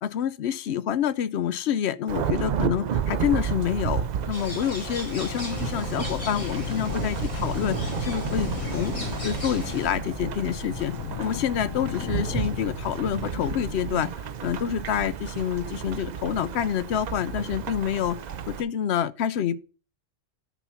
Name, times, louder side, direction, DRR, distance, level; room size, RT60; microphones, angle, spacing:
voice 1, 0.0-8.9 9.2-10.9 11.2-14.1 14.4-18.2 18.5-19.6, left 9 dB, 65° left, 0.8 m, -27 dB
Thunderstorm / Rain, 2.1-18.6, right 8 dB, 70° right, 0.4 m, -32 dB
sound 1, 3.5-15.2, left 9 dB, 80° left, 1.1 m, -36 dB
sound 2, 4.3-9.9, left 1 dB, 25° left, 2.1 m, -39 dB
9.9 x 4.2 x 6.9 m
omnidirectional pair, 1.3 m